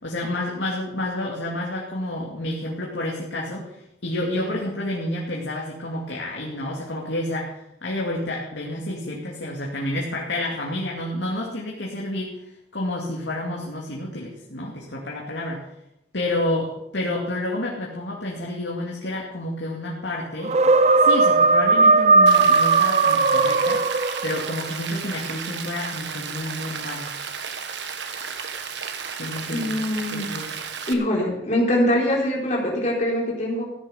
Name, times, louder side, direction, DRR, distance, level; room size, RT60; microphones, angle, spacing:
voice 1, 0.0-15.7 16.1-20.5 21.0-23.8 24.2-27.1 29.2-29.7 30.1-30.5, left 1 dB, 85° left, -3 dB, 2.6 m, -29 dB
sound 1, 20.4-24.5, right 3 dB, 40° right, 0.6 m, -17 dB
Rain, 22.3-30.9, right 6 dB, 80° right, 1.4 m, -33 dB
voice 2, 29.5-30.3 30.9-33.6, left 1 dB, 40° left, -2 dB, 4.4 m, -23 dB
15.0 x 10.0 x 5.8 m, 0.80 s
head